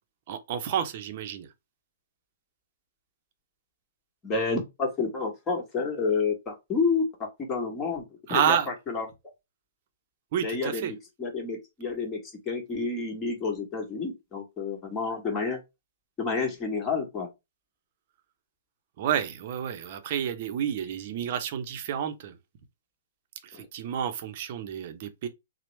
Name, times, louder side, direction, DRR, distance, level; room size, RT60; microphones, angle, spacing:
voice 1, 0.3-1.5 8.3-8.7 10.3-10.9 19.0-22.4 23.4-25.3, right 9 dB, 50° right, 0.6 m, -30 dB
voice 2, 4.2-7.1 7.4-8.6 8.9-9.1 10.4-12.2 12.4-15.6 16.2-17.3 23.5-23.7, left 4 dB, 20° left, 1.3 m, -29 dB
2.9 x 2.0 x 3.1 m
hypercardioid pair, 140°, 0 cm